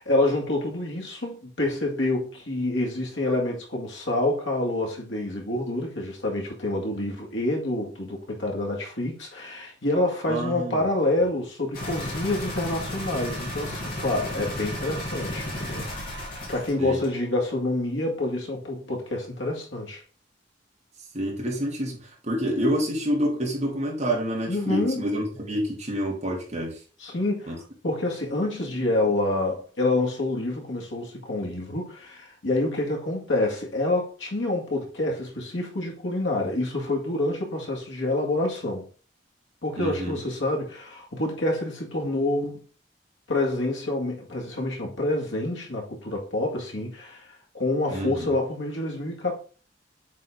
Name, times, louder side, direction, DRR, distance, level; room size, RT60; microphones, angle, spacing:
voice 1, 0.0-15.9 16.5-20.0 24.5-25.1 27.0-38.9 39.6-42.6 43.3-49.3, left 2 dB, 85° left, 2.0 m, -27 dB
voice 2, 10.3-10.8 16.8-17.0 21.1-26.7 27.5-27.6 39.8-40.2 47.9-48.3, equal, 40° right, 2.4 m, -28 dB
sound 1, 11.7-16.7 17.0-17.1, left 1 dB, 55° left, 2.2 m, -33 dB
7.4 x 3.8 x 3.7 m
head